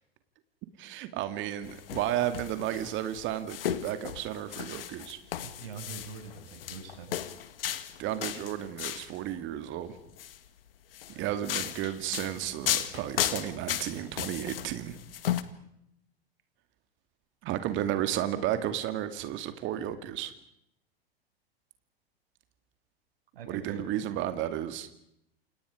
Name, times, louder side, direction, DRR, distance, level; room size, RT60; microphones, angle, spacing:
voice 1, 0.8-5.2 8.0-10.0 11.2-15.0 17.4-20.3 23.5-24.9, right 12 dB, 40° right, 10 dB, 2.3 m, -33 dB
sound 1, 1.6-9.2 10.0-10.4 10.9-15.4, left 11 dB, 65° left, 2.0 m, -35 dB
voice 2, 5.4-7.2 11.1-11.4 23.3-23.8, right 5 dB, 65° right, 4 dB, 7.6 m, -44 dB
29.5 x 27.5 x 5.1 m, 0.78 s
figure-of-eight pair, 95°, 31 cm